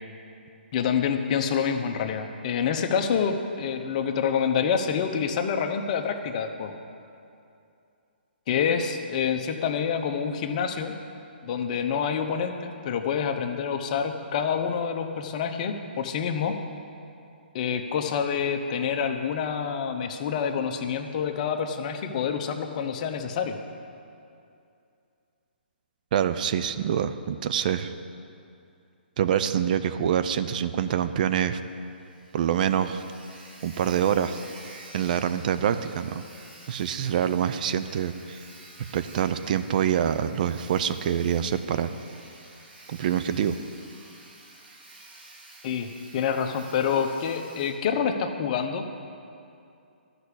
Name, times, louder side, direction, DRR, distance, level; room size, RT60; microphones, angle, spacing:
voice 1, 0.7-6.7 8.5-10.9 11.4-16.6 17.5-23.6 45.6-48.9, left 7 dB, 40° left, 6 dB, 0.9 m, -27 dB
voice 2, 26.1-27.9 29.2-31.6 32.3-33.0 33.6-34.4 34.9-36.2 36.7-38.4 38.9-41.9 42.9-43.6, right 9 dB, 50° right, 11 dB, 0.5 m, -25 dB
Sawing, 30.8-30.9 31.2-31.3 31.7-31.8 32.0-47.7, right 2 dB, 70° right, 2.6 m, -49 dB
12.5 x 6.0 x 8.4 m, 2.6 s
hypercardioid pair, 140°, 6 cm